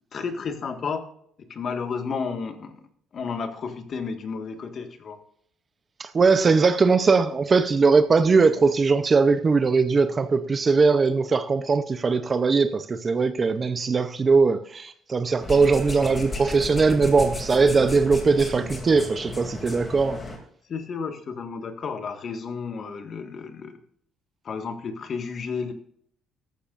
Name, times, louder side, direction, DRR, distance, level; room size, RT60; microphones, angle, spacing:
voice 1, 0.1-1.1 1.4-2.7 3.1-5.2 20.7-23.8 24.4-25.7, left 5 dB, 35° left, 1.6 m, -32 dB
voice 2, 6.0-20.2, right 4 dB, 25° right, 0.6 m, -20 dB
sound 1, 15.4-20.4, left 1 dB, 20° left, 2.6 m, -34 dB
14.5 x 12.0 x 2.5 m
cardioid pair, 160°, 0 cm